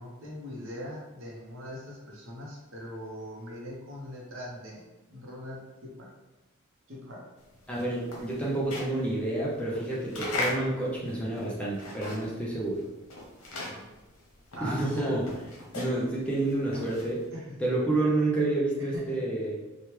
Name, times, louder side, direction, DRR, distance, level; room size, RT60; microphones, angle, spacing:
voice 1, 0.0-6.1 6.9-7.2 13.7-13.9 14.5-15.1 17.3-17.6 18.8-19.2, equal, 65° right, -3 dB, 0.8 m, -41 dB
sound 1, 7.5-12.5 12.8-17.3, left 2 dB, 85° left, 0.9 m, -38 dB
voice 2, 7.7-12.8 14.6-15.3 15.7-17.2 17.6-19.6, right 2 dB, 5° left, -5 dB, 0.5 m, -29 dB
3.0 x 2.3 x 3.1 m, 1.1 s
head